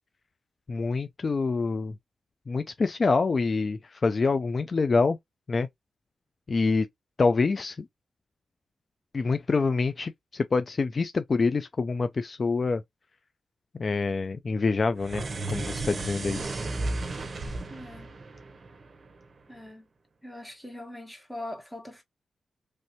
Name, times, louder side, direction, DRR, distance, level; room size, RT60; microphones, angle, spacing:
voice 1, 0.7-2.0 2.5-5.2 5.5-5.7 6.5-6.9 7.2-7.9 9.1-12.8 13.8-16.4, left 4 dB, 50° left, 0.4 m, -26 dB
sound 1, 15.0-19.4, right 2 dB, 50° right, 0.7 m, -34 dB
voice 2, 17.7-18.1 19.5-19.8 20.2-22.0, left 1 dB, 5° left, 1.3 m, -41 dB
3.2 x 2.6 x 2.9 m
cardioid pair, 60°, 0 cm